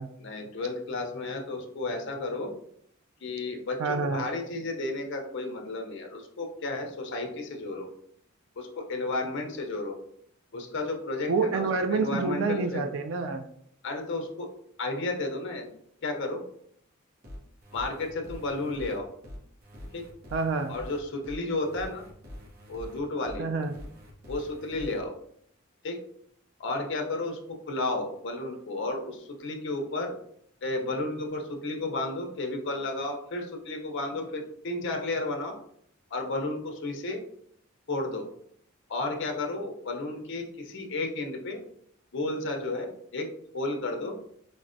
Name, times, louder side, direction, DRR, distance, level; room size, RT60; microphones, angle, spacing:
voice 1, 0.2-2.5 3.2-7.9 8.6-9.9 10.5-12.9 13.8-14.5 14.8-15.7 16.0-16.4 17.7-19.1 19.9-20.0 20.7-22.1 22.7-23.5 24.3-25.1 25.8-26.0 26.6-30.2 30.6-35.5 36.1-37.2 37.9-38.3 38.9-41.6 42.1-44.2, left 2 dB, 60° left, 3 dB, 0.6 m, -32 dB
voice 2, 3.8-4.3 11.3-13.5 20.3-20.8 23.4-23.7, right 4 dB, 65° right, 8 dB, 0.3 m, -28 dB
sound 1, 17.2-25.0, left 1 dB, 45° right, 0.7 m, -45 dB
4.4 x 2.1 x 2.5 m, 0.68 s
head